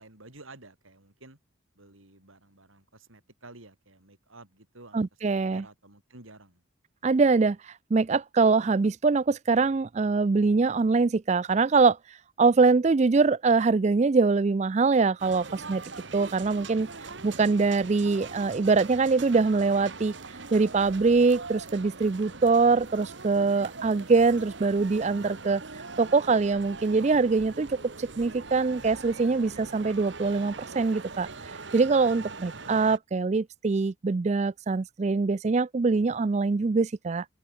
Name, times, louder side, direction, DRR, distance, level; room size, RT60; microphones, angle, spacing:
voice 1, 0.0-1.4 1.8-5.0 5.3-6.6 25.1-25.5 32.1-32.3, right 2 dB, 80° right, 5.6 m, -51 dB
voice 2, 4.9-5.6 7.0-7.6 7.9-12.0 12.4-15.8 16.1-16.9 17.2-20.1 20.5-25.6 26.0-31.3 31.7-37.2, right 4 dB, 35° right, 0.4 m, -23 dB
sound 1, 15.2-33.0, right 4 dB, 60° right, 1.6 m, -42 dB
head